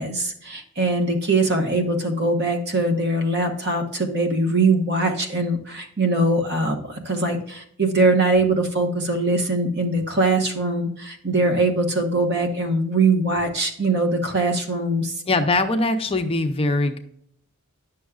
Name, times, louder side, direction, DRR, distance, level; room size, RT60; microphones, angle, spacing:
voice 1, 0.0-15.1, right 2 dB, 50° right, 6 dB, 1.1 m, -22 dB
voice 2, 15.3-17.0, left 2 dB, 25° left, 6 dB, 0.5 m, -21 dB
9.8 x 6.2 x 2.4 m, 0.69 s
head